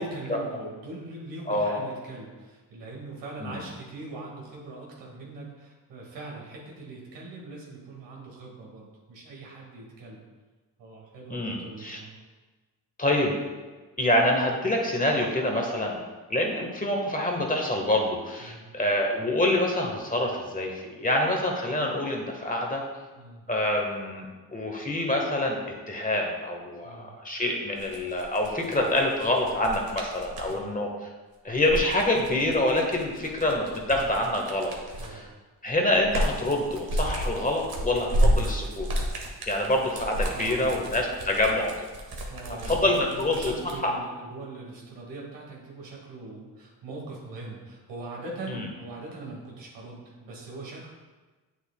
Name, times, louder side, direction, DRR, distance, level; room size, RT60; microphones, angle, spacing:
voice 1, 0.0-10.2 10.8-12.1 18.4-18.7 23.1-23.5 26.8-27.1 30.4-30.8 34.9-35.3 40.1-40.8 42.3-50.9, right 2 dB, 80° right, -2 dB, 1.8 m, -41 dB
voice 2, 1.5-1.8 3.4-3.6 11.3-12.0 13.0-13.3 14.0-16.0 16.3-22.8 23.5-25.6 25.9-30.9 31.4-34.7 35.1-35.2 35.6-38.9 39.5-41.8 42.7-43.5 43.8-43.9 48.5-48.7, left 1 dB, 20° left, 1 dB, 1.3 m, -26 dB
sound 1, 27.8-30.5 31.5-35.2 35.7-43.7, equal, 60° right, 1.4 m, -31 dB
7.8 x 6.1 x 2.2 m, 1.3 s
supercardioid pair, 60°, 42 cm